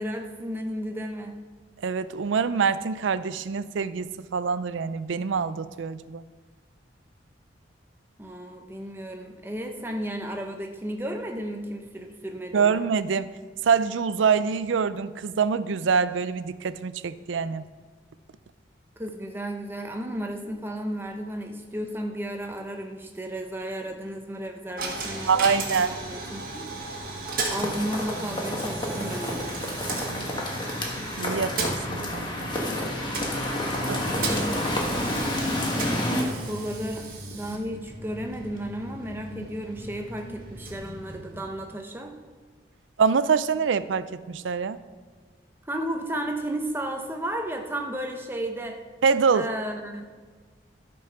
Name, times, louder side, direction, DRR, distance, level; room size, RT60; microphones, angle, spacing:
voice 1, 0.0-1.3 8.2-12.8 19.0-26.6 27.5-29.5 34.1-34.6 35.5-42.1 45.7-48.8 49.3-50.0, right 1 dB, 10° right, 4 dB, 0.8 m, -33 dB
voice 2, 1.8-6.2 12.5-13.3 13.6-17.6 25.3-26.0 31.2-32.5 33.9-34.1 43.0-44.8 49.0-49.5, right 6 dB, 85° right, 15 dB, 0.4 m, -25 dB
Coin (dropping), 24.8-41.7, right 3 dB, 50° right, 1.5 m, -36 dB
sound 1, 27.5-36.2, left 1 dB, 25° left, 1.4 m, -29 dB
sound 2, 28.6-41.5, left 1 dB, 45° left, 1.7 m, -44 dB
12.5 x 5.4 x 5.8 m, 1.5 s
head